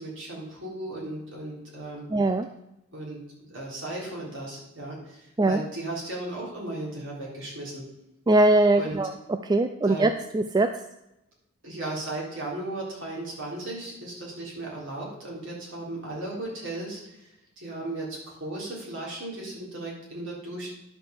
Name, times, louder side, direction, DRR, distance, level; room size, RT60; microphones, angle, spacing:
voice 1, 0.0-2.1 2.9-3.2 3.5-7.8 8.8-9.0 9.8-10.1 11.6-17.3 17.6-20.7, right 2 dB, 60° right, -4 dB, 3.9 m, -36 dB
voice 2, 2.1-2.5 5.4-5.6 8.3-9.1 9.4-10.7, right 2 dB, 20° right, 8 dB, 0.3 m, -21 dB
10.5 x 4.8 x 7.1 m, 0.87 s
head